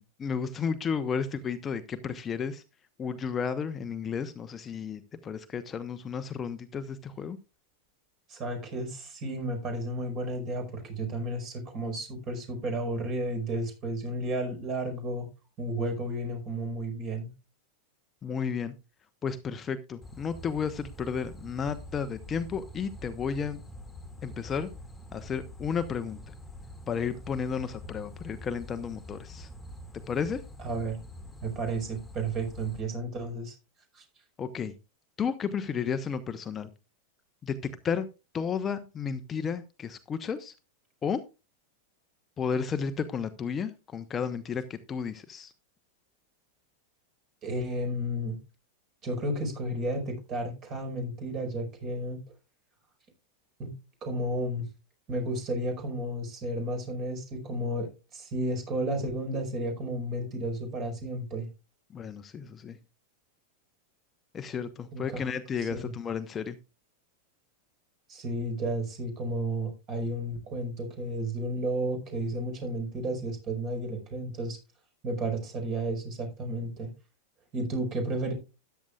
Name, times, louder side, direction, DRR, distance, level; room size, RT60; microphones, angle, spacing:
voice 1, 0.0-2.6 3.0-7.4 18.2-18.7 19.2-23.6 24.2-24.7 25.1-26.3 26.9-29.5 30.1-30.4 34.4-34.7 35.2-36.7 37.4-37.6 37.8-38.1 38.3-40.5 41.0-41.2 42.4-45.5 61.9-62.8 64.3-66.6, left 6 dB, 20° left, 10 dB, 0.9 m, -33 dB
voice 2, 8.3-15.3 15.6-17.3 30.6-31.0 31.4-33.5 33.9-34.0 47.4-48.4 49.0-52.2 53.6-53.7 54.0-54.7 55.1-61.5 64.9-65.2 65.6-65.9 68.1-74.6 75.0-76.9 77.5-78.3, right 1 dB, 35° right, 5 dB, 5.0 m, -32 dB
sound 1, 20.0-32.8, left 1 dB, 5° left, 2.1 m, -46 dB
13.5 x 10.5 x 2.4 m, 0.29 s
figure-of-eight pair, 90°, 0 cm